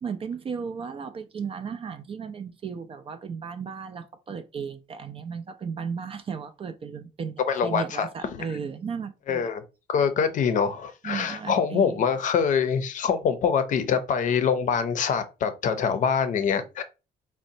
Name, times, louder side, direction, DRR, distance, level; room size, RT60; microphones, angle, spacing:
voice 1, 0.0-9.5 11.0-12.1, right 6 dB, 35° right, 0.4 m, -35 dB
voice 2, 7.5-8.5 9.3-9.6 9.9-16.8, left 6 dB, 50° left, 0.6 m, -25 dB
4.0 x 2.1 x 2.6 m
cardioid pair, 110°, 17 cm